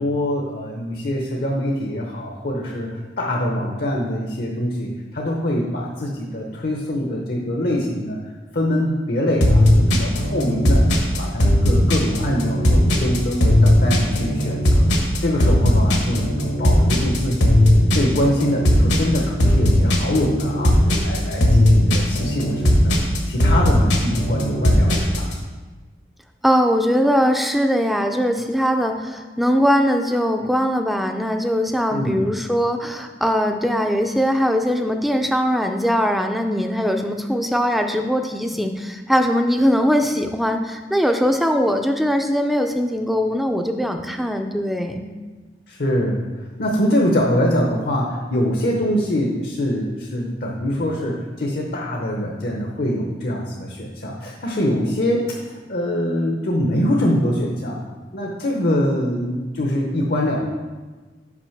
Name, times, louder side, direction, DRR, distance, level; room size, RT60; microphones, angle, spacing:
voice 1, 0.0-8.2 8.5-10.8 11.2-14.8 15.2-17.6 17.9-20.7 21.0-22.9 23.3-25.3 31.9-32.2 45.7-46.2 46.6-57.8 58.1-60.4, left 1 dB, 60° left, -1 dB, 0.8 m, -23 dB
sound 1, 9.4-25.3, left 1 dB, 75° left, 1.4 m, -17 dB
voice 2, 26.4-45.1, equal, ahead, 5 dB, 0.4 m, -21 dB
6.0 x 5.4 x 5.7 m, 1.3 s
head